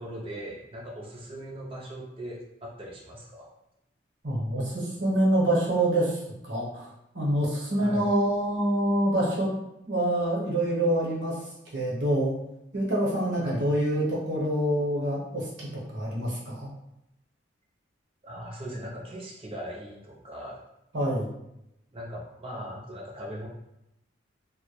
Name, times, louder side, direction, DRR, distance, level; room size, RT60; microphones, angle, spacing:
voice 1, 0.0-3.5 7.8-8.1 13.4-13.7 18.2-20.6 21.9-23.5, equal, 30° right, -2 dB, 0.4 m, -39 dB
voice 2, 4.2-6.9 7.1-9.5 9.9-11.4 11.7-12.3 12.7-16.7 20.9-21.3, right 1 dB, 65° right, -5 dB, 0.9 m, -26 dB
2.2 x 2.0 x 2.9 m, 0.85 s
head